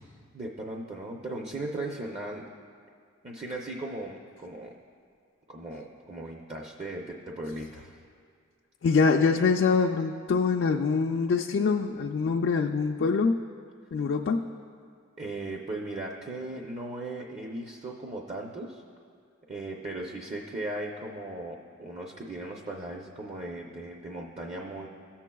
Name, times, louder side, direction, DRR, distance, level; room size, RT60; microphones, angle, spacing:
voice 1, 0.3-2.5 3.2-4.7 5.5-8.0 15.2-18.8 19.5-24.9, right 2 dB, 30° right, 0 dB, 0.6 m, -37 dB
voice 2, 8.8-13.4 13.9-14.4, left 5 dB, 55° left, 0 dB, 0.4 m, -24 dB
17.5 x 7.2 x 2.3 m, 2.1 s
head